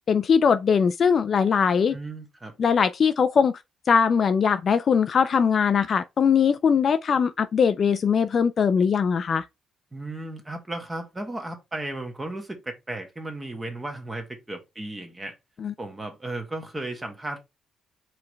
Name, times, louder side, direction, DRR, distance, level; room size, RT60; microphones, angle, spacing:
voice 1, 0.1-1.9 2.6-3.5 3.9-9.4 15.6-15.7, left 6 dB, 45° left, 0.3 m, -21 dB
voice 2, 1.9-2.5 9.9-15.4 15.8-17.4, right 2 dB, 15° right, 1.3 m, -35 dB
4.6 x 3.2 x 3.4 m
cardioid pair, 120°, 0 cm